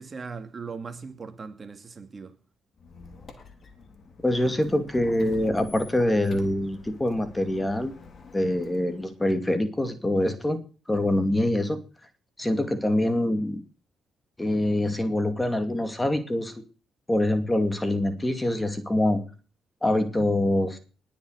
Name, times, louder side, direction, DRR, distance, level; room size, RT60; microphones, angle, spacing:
voice 1, 0.0-2.4, right 5 dB, 35° right, 2.5 m, -39 dB
Squeak, 2.8-9.2, left 4 dB, 50° left, 3.5 m, -48 dB
voice 2, 4.2-7.9 8.3-10.6 10.9-11.8 12.4-13.6 14.4-16.5 17.1-19.2 19.8-20.8, left 1 dB, 15° left, 2.4 m, -25 dB
20.0 x 7.3 x 6.6 m
cardioid pair, 90°, 0 cm